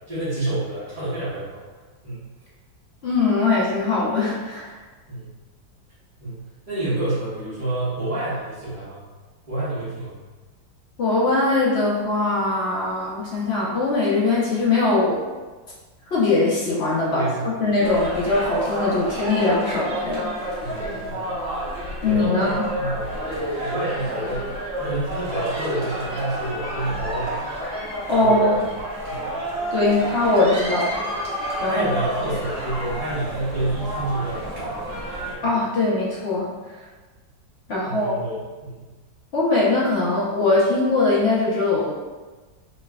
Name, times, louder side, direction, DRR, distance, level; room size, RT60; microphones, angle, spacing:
voice 1, 0.1-1.6 2.0-2.2 5.1-5.3 6.2-9.0 9.5-10.2 17.1-17.7 20.6-21.4 22.0-24.5 24.8-27.4 28.1-28.5 29.1-29.4 31.6-34.8 35.4-35.5 37.8-38.9, right 2 dB, 20° right, -18 dB, 1.1 m, -29 dB
voice 2, 3.0-4.7 11.0-15.2 16.1-20.4 22.0-22.7 28.1-28.6 29.7-31.0 31.6-31.8 35.4-36.5 37.7-38.2 39.3-41.9, left 2 dB, 55° left, -7 dB, 0.7 m, -21 dB
sound 1, 17.8-35.3, right 1 dB, 45° right, 0.8 m, -30 dB
3.2 x 3.1 x 2.3 m, 1.3 s
omnidirectional pair, 2.1 m